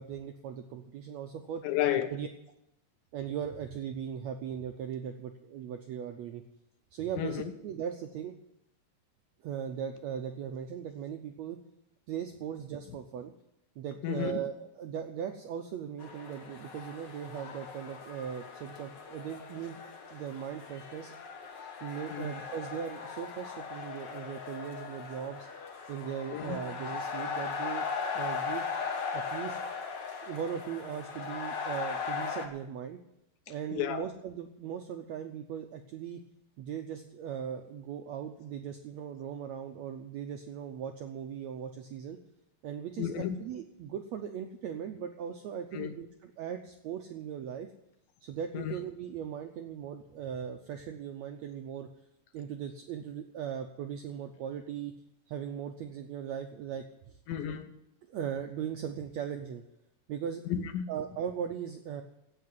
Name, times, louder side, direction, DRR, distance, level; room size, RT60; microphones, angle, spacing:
voice 1, 0.0-1.6 2.1-2.3 3.1-6.4 6.9-8.3 9.4-11.6 12.1-13.3 13.8-19.8 20.1-21.1 21.8-25.5 25.9-27.9 28.1-28.6 29.1-29.6 30.2-33.0 33.5-36.2 36.6-42.2 42.6-47.7 48.2-51.9 52.3-54.9 55.3-57.2 58.1-59.6 60.1-60.5 60.9-62.0, right 8 dB, 80° right, 4 dB, 1.6 m, -38 dB
voice 2, 1.6-2.1 7.2-7.5 14.0-14.3 22.1-22.3 26.3-26.6 33.7-34.0 43.0-43.4 45.7-45.9 48.5-48.7 57.3-57.7 60.5-60.9, left 10 dB, 80° left, 8 dB, 2.6 m, -32 dB
sound 1, 16.0-32.5, left 5 dB, 55° left, 1.2 m, -38 dB
16.5 x 5.8 x 9.3 m, 0.80 s
omnidirectional pair, 4.0 m